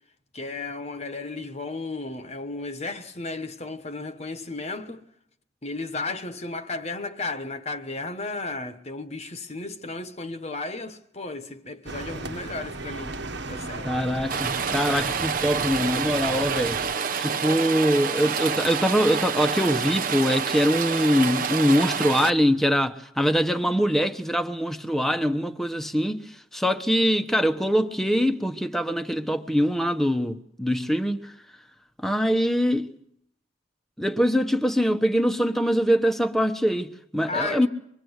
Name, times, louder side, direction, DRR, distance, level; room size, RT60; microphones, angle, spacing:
voice 1, 0.3-5.0 5.6-13.2 13.5-13.9 37.3-37.7, left 3 dB, 35° left, 1.3 m, -34 dB
sound 1, 11.9-16.9, right 2 dB, 70° right, 1.5 m, -36 dB
voice 2, 13.8-16.8 17.2-31.3 32.0-32.9 34.0-37.7, equal, ahead, 1.1 m, -23 dB
Rain, 14.3-22.3, right 6 dB, 45° right, 1.1 m, -28 dB
26.0 x 22.0 x 8.1 m
head